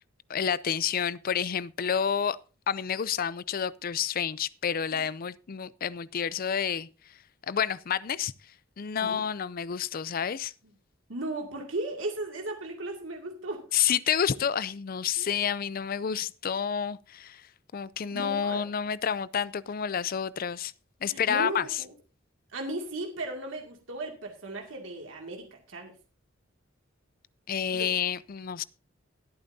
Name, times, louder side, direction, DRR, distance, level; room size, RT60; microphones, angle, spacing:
voice 1, 0.3-2.4 2.7-6.9 7.5-8.3 8.8-10.5 13.7-17.5 17.7-20.7 21.0-21.8 27.5-28.6, left 8 dB, 45° left, 0.5 m, -29 dB
voice 2, 11.1-13.6 15.2-15.3 18.1-18.6 21.0-21.9 22.5-25.9 27.7-28.0, right 2 dB, 75° right, 2.3 m, -36 dB
21.0 x 8.8 x 2.7 m
head